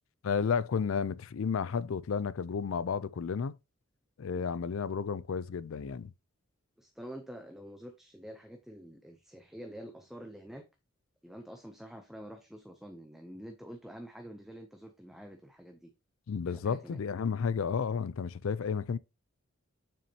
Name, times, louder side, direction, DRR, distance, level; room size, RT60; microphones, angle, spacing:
voice 1, 0.2-3.6 4.2-6.1 16.3-19.0, left 6 dB, 75° left, 0.4 m, -32 dB
voice 2, 6.8-10.6 11.2-15.9 16.5-17.0, equal, ahead, 0.6 m, -47 dB
6.9 x 6.3 x 2.8 m
head